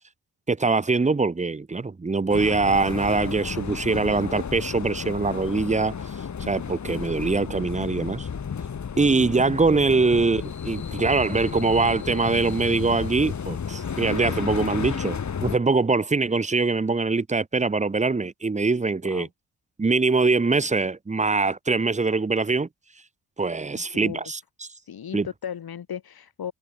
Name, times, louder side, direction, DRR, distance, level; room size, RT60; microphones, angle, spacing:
voice 1, 0.5-5.9 6.4-8.3 9.0-19.3 19.8-22.7 23.4-24.7 25.1-25.3, right 3 dB, 20° right, 1.0 m, -23 dB
sound 1, 2.3-15.6, left 6 dB, 50° left, 2.6 m, -32 dB
voice 2, 23.7-24.2 24.7-26.5, left 8 dB, 75° left, 6.8 m, -36 dB
wide cardioid pair, 110°, 37 cm